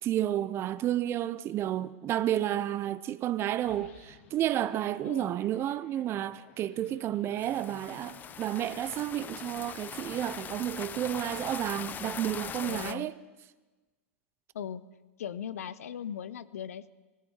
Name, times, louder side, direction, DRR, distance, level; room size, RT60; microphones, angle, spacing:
voice 1, 0.0-13.2, right 12 dB, 35° right, 0.6 m, -31 dB
sound 1, 3.6-11.9, left 5 dB, 60° left, 1.7 m, -55 dB
voice 2, 5.0-5.4 12.6-13.1 14.5-14.8 15.2-16.9, left 9 dB, 85° left, 0.6 m, -39 dB
sound 2, 7.4-12.9, left 8 dB, 25° left, 0.4 m, -41 dB
18.5 x 15.0 x 4.4 m
hypercardioid pair, 120°, 8 cm